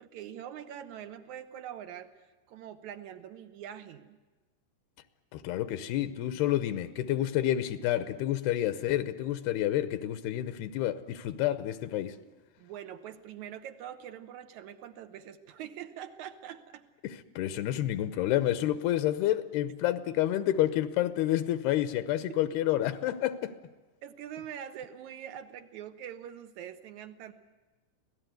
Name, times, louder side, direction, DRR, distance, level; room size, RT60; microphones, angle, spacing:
voice 1, 0.0-2.1 2.5-4.2 12.6-16.8 22.3-22.4 24.0-27.3, right 10 dB, 75° right, 1.8 m, -44 dB
voice 2, 5.3-12.2 17.0-23.5, left 13 dB, 80° left, 2.9 m, -29 dB
25.5 x 17.5 x 9.2 m
omnidirectional pair, 4.5 m